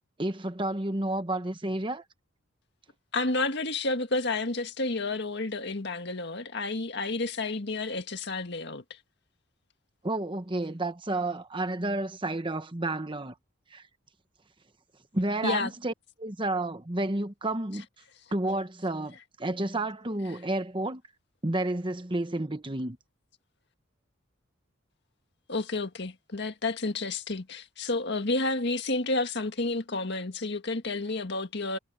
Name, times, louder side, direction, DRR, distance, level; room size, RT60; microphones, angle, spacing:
voice 1, 0.2-2.0 10.0-13.3 13.7-13.8 15.1-15.9 16.2-17.8 18.3-21.0 21.4-23.0, right 2 dB, 25° right, 1.2 m, -30 dB
voice 2, 3.1-9.0 15.4-15.7 25.5-31.8, left 3 dB, 60° left, 1.9 m, -30 dB
head